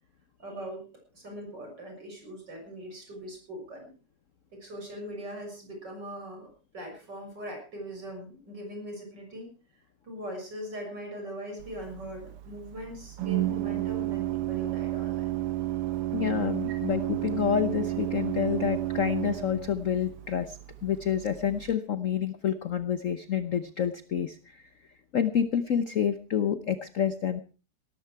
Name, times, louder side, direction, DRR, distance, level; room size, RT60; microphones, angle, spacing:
voice 1, 0.4-0.8 1.1-3.9 4.5-6.5 6.7-9.5 10.0-15.4, equal, 50° right, 2 dB, 7.2 m, -40 dB
Organ, 11.6-21.7, right 15 dB, 90° right, 1.9 m, -32 dB
voice 2, 16.1-24.4 25.1-27.4, left 8 dB, 55° left, 12 dB, 0.9 m, -28 dB
18.0 x 14.0 x 4.6 m, 0.36 s
omnidirectional pair, 2.4 m